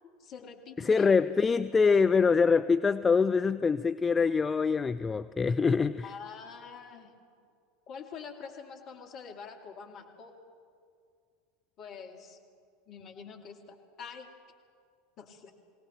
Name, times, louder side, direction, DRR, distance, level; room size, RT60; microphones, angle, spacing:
voice 1, 0.2-1.2 6.0-7.1 7.9-10.3 11.8-12.4 12.9-14.3 15.2-15.5, left 6 dB, 40° left, 2 dB, 2.6 m, -46 dB
voice 2, 0.8-6.1, left 5 dB, 20° left, 11 dB, 0.4 m, -24 dB
23.0 x 17.5 x 6.6 m, 2.2 s
figure-of-eight pair, 80°, 0 cm